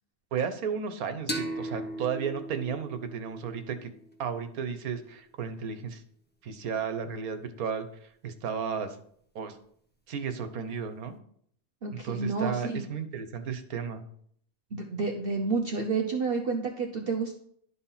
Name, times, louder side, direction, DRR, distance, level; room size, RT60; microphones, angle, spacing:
voice 1, 0.3-3.9 4.2-6.0 6.4-9.0 9.3-9.6 10.1-11.2 12.0-14.0, right 7 dB, 80° right, 9 dB, 1.4 m, -33 dB
sound 1, 1.3-4.6, right 1 dB, 10° left, 0.9 m, -38 dB
voice 2, 11.8-12.8 14.7-17.3, right 4 dB, 45° right, 2 dB, 1.0 m, -30 dB
11.5 x 4.3 x 5.7 m, 0.64 s
omnidirectional pair, 1.5 m